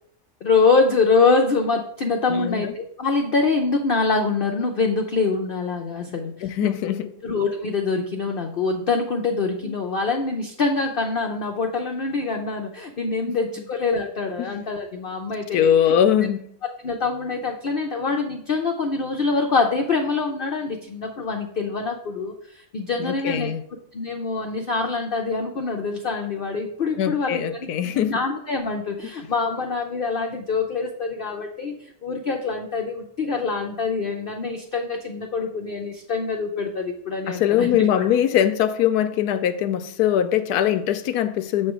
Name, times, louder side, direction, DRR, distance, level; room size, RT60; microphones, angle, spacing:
voice 1, 0.4-6.9 7.2-16.3 16.6-23.5 23.9-27.7 27.9-31.7 32.0-38.0, left 4 dB, 55° left, 0.6 m, -25 dB
voice 2, 2.3-2.7 6.4-7.1 9.6-9.7 13.3-13.4 14.4-14.6 15.5-16.4 23.0-23.6 27.0-28.2 37.3-41.7, left 10 dB, 90° left, 1.1 m, -22 dB
7.0 x 3.3 x 6.0 m
omnidirectional pair, 1.6 m